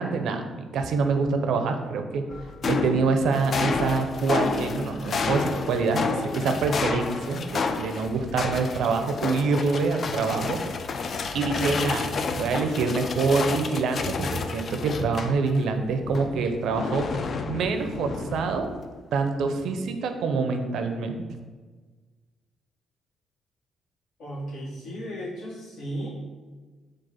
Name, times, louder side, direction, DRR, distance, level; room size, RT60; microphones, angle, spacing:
voice 1, 0.0-2.3 2.6-10.6 11.3-17.1 17.5-18.7 19.1-21.2, right 4 dB, 75° right, 6 dB, 0.4 m, -26 dB
sound 1, 2.3-15.7 16.0-18.8, left 4 dB, 50° left, 0.3 m, -30 dB
voice 2, 24.2-26.1, equal, 75° left, -5 dB, 1.4 m, -35 dB
4.7 x 2.4 x 4.3 m, 1.4 s
cardioid pair, 90°, 0 cm